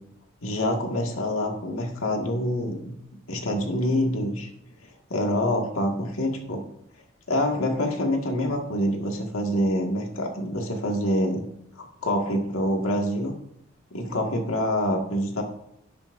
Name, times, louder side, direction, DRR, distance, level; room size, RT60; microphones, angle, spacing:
voice 1, 0.4-3.0 3.3-4.5 5.1-6.6 7.3-11.4 11.8-13.3 13.9-15.4, left 1 dB, 85° left, 1 dB, 1.9 m, -26 dB
11.5 x 10.5 x 2.6 m, 0.76 s
head